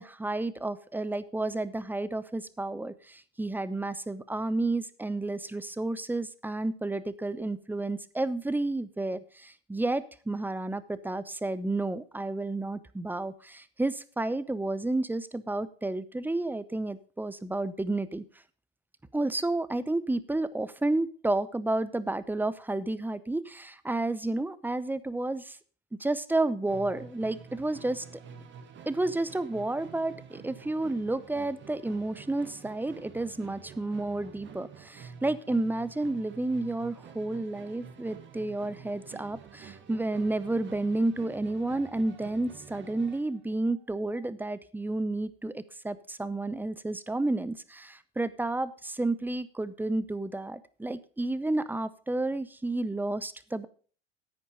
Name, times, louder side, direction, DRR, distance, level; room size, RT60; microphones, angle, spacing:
voice 1, 0.0-18.2 19.1-25.6 26.0-28.0 28.9-53.7, right 2 dB, 5° right, 16 dB, 0.7 m, -31 dB
Musical instrument, 26.7-43.3, right 7 dB, 40° right, 1.8 m, -49 dB
10.5 x 8.5 x 5.0 m, 0.41 s
hypercardioid pair, 75°, 29 cm